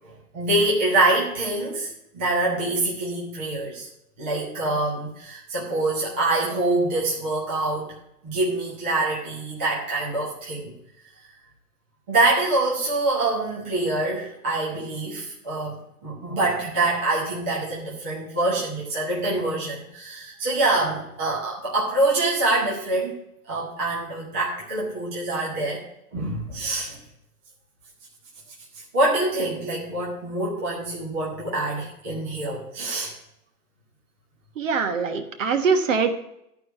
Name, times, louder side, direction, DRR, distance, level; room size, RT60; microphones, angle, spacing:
voice 1, 0.0-3.9 4.2-7.9 8.2-10.7 12.1-23.1 23.5-25.8 26.1-27.0 28.9-33.1, right 2 dB, 10° right, -6 dB, 0.6 m, -25 dB
voice 2, 34.6-36.1, right 5 dB, 55° right, 7 dB, 1.3 m, -23 dB
11.5 x 4.7 x 6.6 m, 0.80 s
hypercardioid pair, 165°, 47 cm